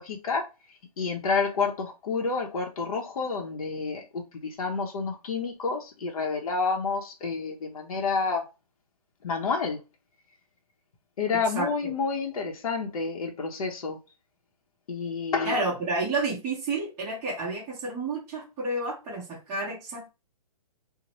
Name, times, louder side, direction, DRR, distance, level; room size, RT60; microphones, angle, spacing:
voice 1, 0.0-8.5 9.2-9.8 11.2-14.0 14.9-15.6, left 4 dB, 65° left, 0.7 m, -29 dB
voice 2, 15.4-20.1, right 2 dB, 15° right, 0.8 m, -30 dB
2.8 x 2.0 x 2.9 m
hypercardioid pair, 165°, 20 cm